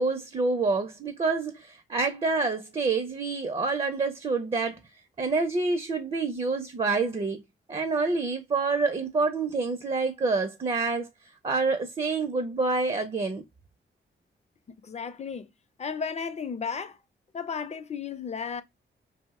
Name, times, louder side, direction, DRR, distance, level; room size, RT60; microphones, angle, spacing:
voice 1, 0.0-4.8 5.2-7.4 7.7-11.1 11.4-13.4, right 3 dB, 30° right, 0.5 m, -27 dB
voice 2, 14.8-15.5 15.8-17.0 17.3-18.6, left 6 dB, 35° left, 0.4 m, -34 dB
2.5 x 2.1 x 3.5 m
cardioid pair, 80°, 20 cm